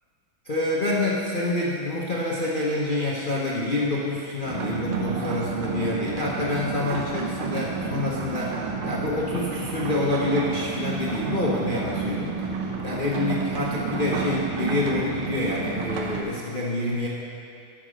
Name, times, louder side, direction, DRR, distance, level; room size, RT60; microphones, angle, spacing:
voice 1, 0.5-12.4 12.8-17.1, left 2 dB, 65° left, -6 dB, 0.5 m, -27 dB
sound 1, 4.4-16.2, right 5 dB, 80° right, 1.7 m, -30 dB
10.5 x 6.7 x 5.0 m, 2.6 s
omnidirectional pair, 2.3 m